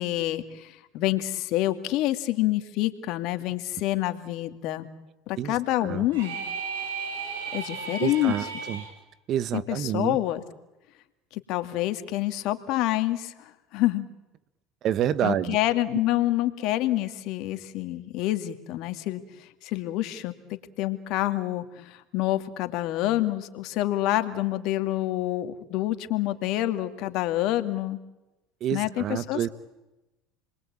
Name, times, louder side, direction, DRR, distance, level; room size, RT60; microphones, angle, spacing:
voice 1, 0.0-4.9 5.3-6.4 7.5-8.3 9.5-10.4 11.3-14.1 15.2-20.3 20.8-28.0 28.7-29.4, left 15 dB, 65° left, 2.4 m, -27 dB
voice 2, 5.4-6.1 8.0-8.9 9.3-10.2 14.8-15.6 28.6-29.5, right 10 dB, 50° right, 1.4 m, -28 dB
sound 1, 6.1-8.9, right 5 dB, 85° right, 6.1 m, -34 dB
29.5 x 22.5 x 8.8 m
supercardioid pair, 90°, 0 cm